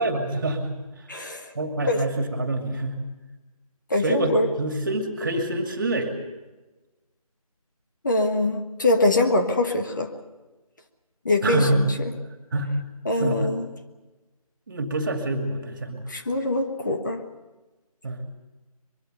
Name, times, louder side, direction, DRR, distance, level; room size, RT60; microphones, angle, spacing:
voice 1, 0.0-1.1 1.5-3.0 4.0-6.1 11.4-11.9 12.5-12.7 13.2-13.5 14.7-16.0 18.0-18.2, right 2 dB, 35° right, 5 dB, 2.5 m, -26 dB
voice 2, 1.1-1.5 1.9-2.0 3.9-4.5 8.0-10.1 11.2-11.9 13.0-13.7 16.1-17.2, left 2 dB, 30° left, 5 dB, 1.4 m, -23 dB
23.5 x 23.0 x 6.7 m, 1.1 s
figure-of-eight pair, 165°, 19 cm